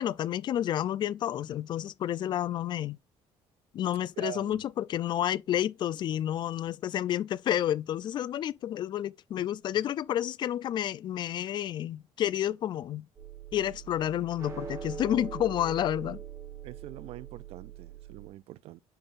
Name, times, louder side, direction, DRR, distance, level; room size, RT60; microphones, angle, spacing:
voice 1, 0.0-3.0 3.7-13.1 13.5-16.2, left 11 dB, 45° left, 0.4 m, -30 dB
voice 2, 4.2-4.6 16.6-18.8, right 15 dB, 60° right, 0.4 m, -43 dB
sound 1, 13.1-18.3, right 7 dB, 25° right, 2.1 m, -42 dB
7.9 x 5.5 x 2.5 m
cardioid pair, 150°, 11 cm